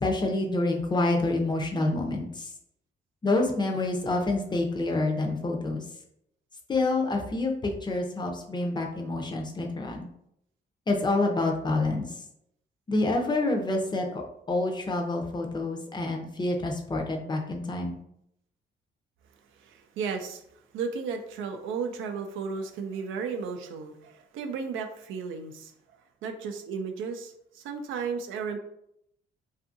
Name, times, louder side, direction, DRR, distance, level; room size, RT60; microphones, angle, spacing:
voice 1, 0.0-2.3 3.2-5.8 6.7-10.1 10.9-12.1 12.9-14.2 14.5-18.0, left 2 dB, 20° left, 2 dB, 0.5 m, -27 dB
voice 2, 19.6-20.4 20.7-25.7 26.2-28.6, right 5 dB, 80° right, 6 dB, 0.4 m, -34 dB
2.6 x 2.4 x 2.6 m, 0.75 s
cardioid pair, 90°, 20 cm